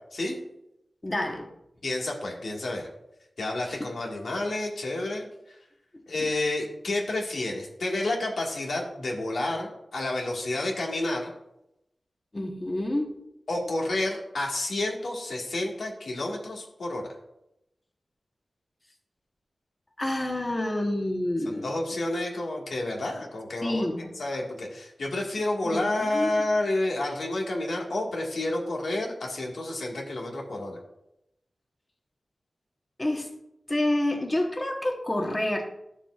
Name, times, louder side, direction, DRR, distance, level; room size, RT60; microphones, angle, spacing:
voice 1, 1.0-1.5 3.7-3.9 6.2-6.3 12.3-13.2 20.0-21.7 23.6-24.1 25.6-26.3 33.0-33.3 33.7-35.7, left 1 dB, 30° left, 2 dB, 1.1 m, -28 dB
voice 2, 1.8-2.9 3.4-5.3 6.1-11.3 13.5-17.1 21.6-23.9 24.1-30.8, left 2 dB, 80° left, -1 dB, 1.7 m, -30 dB
12.0 x 6.8 x 2.4 m, 0.85 s
wide cardioid pair, 70°, 0 cm